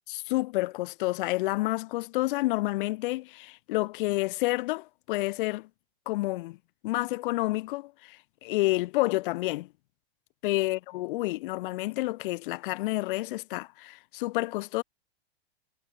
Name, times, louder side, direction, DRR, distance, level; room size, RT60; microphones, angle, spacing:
voice 1, 0.1-5.7 6.0-6.6 6.8-9.7 10.4-14.8, left 20 dB, 55° left, 1.4 m, -29 dB
hypercardioid pair, 145°, 32 cm